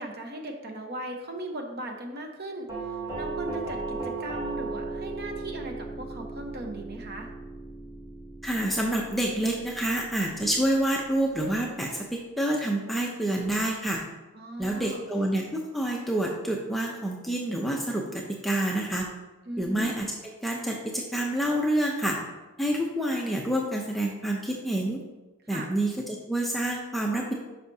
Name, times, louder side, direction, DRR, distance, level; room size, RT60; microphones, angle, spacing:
voice 1, 0.0-7.3 14.3-15.0 19.5-19.9 25.5-25.7, right 1 dB, 45° right, 3 dB, 0.9 m, -38 dB
Doorbell, 2.7-11.5, right 3 dB, 20° right, 2.3 m, -37 dB
voice 2, 8.4-14.0 14.6-19.1 19.6-22.2 22.6-25.0 25.5-27.3, right 1 dB, ahead, -1 dB, 0.6 m, -28 dB
9.8 x 5.8 x 2.8 m, 1.1 s
head